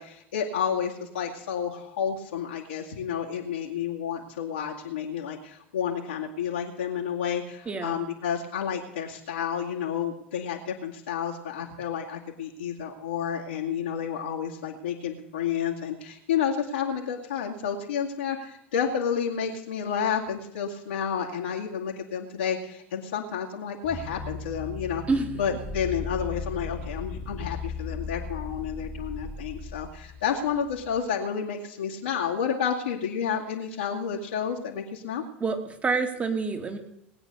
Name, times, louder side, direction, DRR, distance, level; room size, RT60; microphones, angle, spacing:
voice 1, 0.0-25.0 25.3-35.2, left 7 dB, 75° left, -4 dB, 2.3 m, -30 dB
voice 2, 7.7-8.0 25.1-25.3 35.4-36.8, right 4 dB, 20° right, 5 dB, 2.9 m, -27 dB
sound 1, 23.8-31.0, left 4 dB, 15° left, 2.1 m, -37 dB
20.0 x 9.0 x 6.7 m, 0.83 s
figure-of-eight pair, 75°, 6 cm